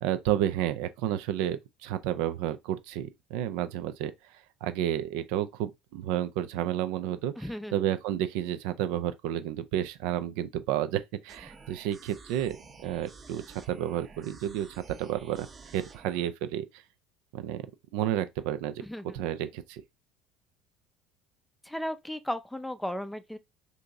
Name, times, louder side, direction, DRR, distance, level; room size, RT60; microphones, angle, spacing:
voice 1, 0.0-4.1 4.6-7.3 7.7-12.6 12.8-14.7 15.0-15.5 15.7-16.6 17.3-17.6 17.9-18.8 19.1-19.8, right 11 dB, 65° right, 0.4 m, -31 dB
voice 2, 7.4-7.8 18.8-19.2 21.6-23.4, left 1 dB, 5° left, 0.5 m, -35 dB
sound 1, 11.3-16.3, right 4 dB, 35° right, 0.7 m, -51 dB
2.8 x 2.6 x 3.5 m
hypercardioid pair, 65°, 0 cm